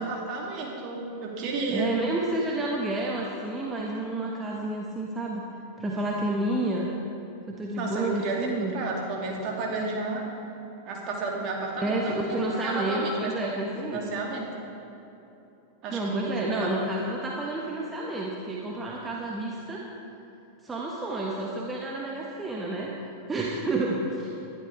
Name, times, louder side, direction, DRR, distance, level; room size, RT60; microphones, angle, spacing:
voice 1, 0.0-1.9 7.8-8.4 8.7-10.2 10.8-12.4 12.6-13.5 13.8-14.4 15.8-16.7, right 3 dB, 40° right, -1 dB, 2.7 m, -32 dB
voice 2, 1.7-5.4 5.8-6.9 7.5-8.8 11.8-14.0 15.9-19.8 20.6-22.9 23.3-24.3, right 2 dB, 15° right, -2 dB, 1.3 m, -30 dB
20.0 x 12.0 x 3.5 m, 3.0 s
figure-of-eight pair, 90°, 0 cm